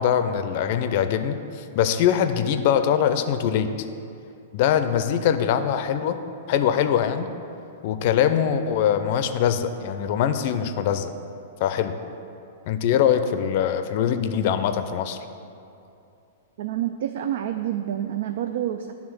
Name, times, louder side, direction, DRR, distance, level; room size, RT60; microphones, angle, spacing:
voice 1, 0.0-3.7 4.5-6.2 6.5-7.3 7.8-11.1 11.6-11.9 12.7-15.2, left 9 dB, 55° left, 10 dB, 0.5 m, -22 dB
voice 2, 16.6-18.9, right 11 dB, 65° right, 8 dB, 0.3 m, -28 dB
9.4 x 3.6 x 6.1 m, 2.7 s
hypercardioid pair, 115°, 0 cm